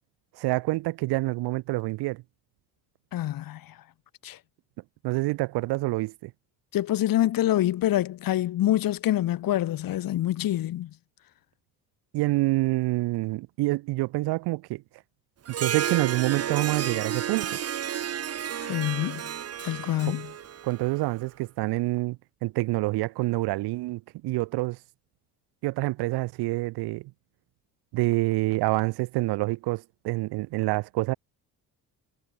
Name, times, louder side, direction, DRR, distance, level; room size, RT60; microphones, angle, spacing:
voice 1, 0.4-2.2 5.0-6.3 12.1-14.8 15.5-17.6 20.6-24.8 25.6-27.1 27.9-31.1, right 20 dB, 90° right, 1.5 m, -27 dB
voice 2, 3.1-3.6 4.2-4.4 6.7-10.9 18.6-19.2 19.6-20.3, left 13 dB, 60° left, 2.2 m, -26 dB
Harp, 15.5-21.2, right 9 dB, 40° right, 1.4 m, -32 dB
cardioid pair, 125°, 38 cm